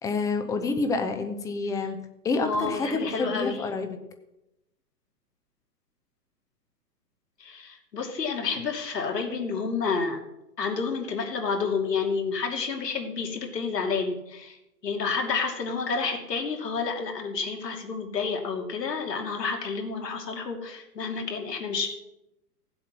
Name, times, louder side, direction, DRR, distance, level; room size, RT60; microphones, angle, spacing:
voice 1, 0.0-2.0 2.2-4.0, left 3 dB, 5° left, 7 dB, 0.6 m, -28 dB
voice 2, 2.4-3.6 7.4-10.2 10.6-14.6 14.8-21.9, left 5 dB, 80° left, 2 dB, 2.8 m, -30 dB
16.0 x 7.7 x 6.0 m, 0.91 s
hypercardioid pair, 125°, 48 cm